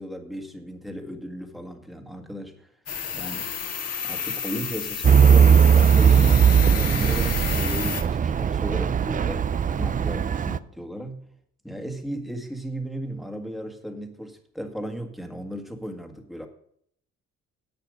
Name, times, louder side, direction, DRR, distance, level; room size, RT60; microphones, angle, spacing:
voice 1, 0.0-2.7 3.1-3.5 4.0-9.5 9.8-11.2 11.6-16.5, equal, ahead, 4 dB, 1.8 m, -35 dB
sound 1, 2.9-8.0, left 7 dB, 55° left, 1.6 m, -31 dB
Truck / Idling, 5.0-10.6, right 7 dB, 30° right, 0.4 m, -18 dB
10.5 x 8.2 x 5.0 m, 0.66 s
cardioid pair, 90°, 30 cm